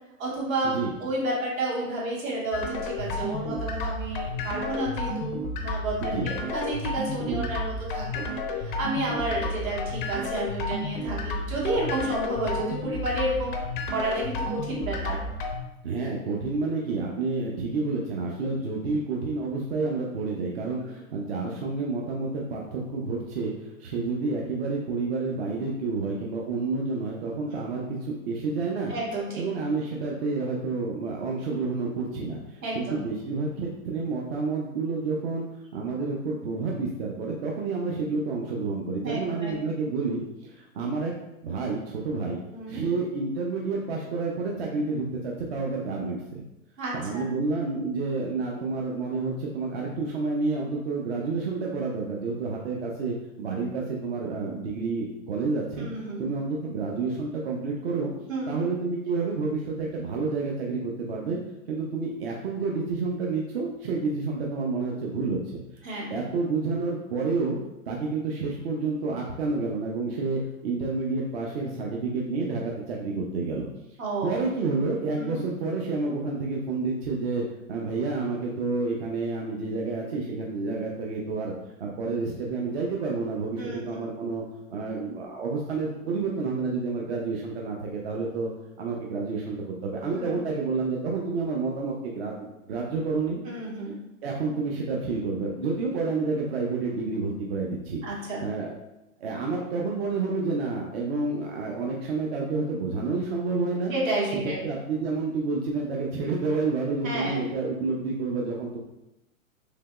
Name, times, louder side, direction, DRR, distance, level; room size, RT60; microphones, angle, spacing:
voice 1, 0.2-8.2 8.6-13.6 13.9-15.2 20.9-21.0 27.5-27.7 28.9-29.4 32.6-33.0 39.0-39.6 42.5-42.8 46.8-47.2 55.8-56.3 58.3-58.6 65.8-66.2 74.0-74.4 75.2-75.4 83.5-83.8 90.1-90.4 93.4-94.0 98.0-98.4 103.9-104.6 107.0-107.4, right 2 dB, 65° right, -4 dB, 1.4 m, -31 dB
sound 1, 2.5-15.6, left 2 dB, 40° left, 0.4 m, -31 dB
voice 2, 15.8-28.9 29.4-35.5 35.7-41.1 41.4-42.4 42.7-46.4 46.9-55.9 56.2-58.1 58.5-61.4 61.7-65.8 66.1-67.6 67.9-73.7 74.2-81.5 81.8-84.4 84.7-88.5 88.8-93.4 94.2-98.7 99.2-103.9 104.6-108.8, right 3 dB, 45° right, -2 dB, 0.5 m, -29 dB
3.3 x 2.9 x 2.2 m, 0.92 s
hypercardioid pair, 125°, 43 cm